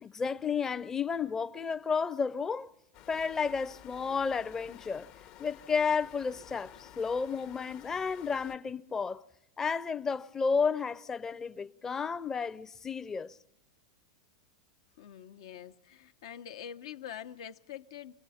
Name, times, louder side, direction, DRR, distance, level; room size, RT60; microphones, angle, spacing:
voice 1, 0.0-2.7 3.1-5.1 5.4-9.2 9.6-13.4, left 5 dB, 20° left, 0.6 m, -32 dB
sound 1, 2.9-8.6, left 11 dB, 50° left, 0.9 m, -53 dB
voice 2, 15.0-18.1, left 9 dB, 75° left, 0.9 m, -45 dB
29.5 x 21.5 x 4.2 m
hypercardioid pair, 120°, 3 cm